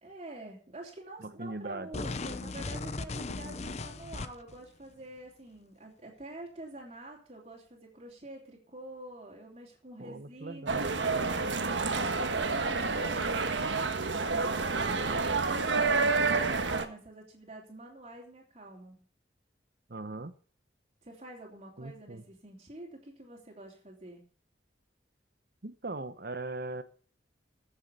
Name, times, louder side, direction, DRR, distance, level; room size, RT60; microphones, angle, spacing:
voice 1, 0.0-11.1 12.0-19.0 21.0-24.2, right 1 dB, 35° right, -3 dB, 3.3 m, -47 dB
voice 2, 1.2-1.9 10.0-10.9 14.8-15.2 19.9-20.3 21.8-22.2 25.6-26.8, right 2 dB, 55° right, 12 dB, 1.0 m, -39 dB
sound 1, 1.9-4.6, left 3 dB, 35° left, 0.7 m, -37 dB
sound 2, 10.7-16.9, right 4 dB, 85° right, 1.5 m, -29 dB
15.0 x 7.3 x 6.7 m, 0.40 s
head